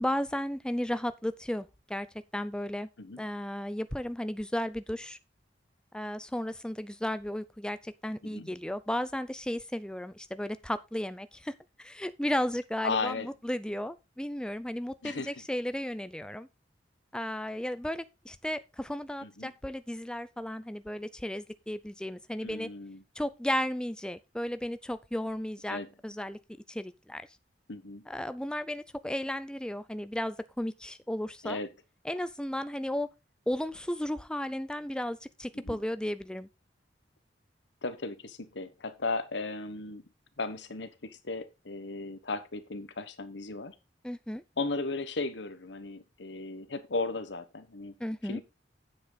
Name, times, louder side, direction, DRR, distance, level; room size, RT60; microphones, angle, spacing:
voice 1, 0.0-2.1 2.3-2.9 3.2-5.2 5.9-16.5 17.1-22.7 23.2-26.4 26.7-27.2 28.1-31.6 32.1-33.1 33.5-36.5 44.0-44.4 48.0-48.4, left 1 dB, 5° left, 0.5 m, -34 dB
voice 2, 12.8-13.3 15.0-15.4 19.2-19.5 22.4-23.0 25.7-25.9 27.7-28.0 31.4-31.7 35.5-35.8 37.8-40.0 40.4-43.7 44.6-47.9 48.2-48.4, left 3 dB, 75° left, 1.2 m, -36 dB
9.3 x 7.8 x 4.0 m
head